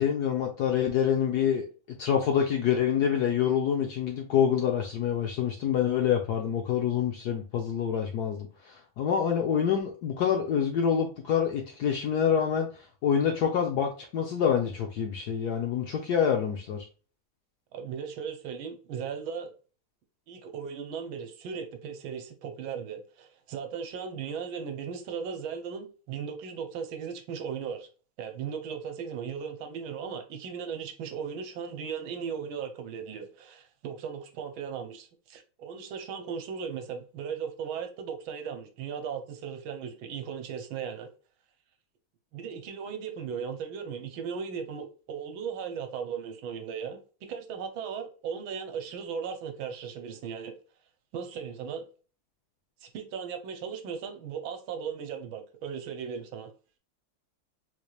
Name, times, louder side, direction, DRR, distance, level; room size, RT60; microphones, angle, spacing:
voice 1, 0.0-1.6 2.0-16.9, left 8 dB, 70° left, 0.9 m, -26 dB
voice 2, 17.7-19.5 20.3-27.9 28.2-41.1 42.3-50.5 51.1-51.8 52.8-56.5, right 7 dB, 75° right, 1.5 m, -37 dB
4.3 x 3.2 x 2.3 m
omnidirectional pair, 2.3 m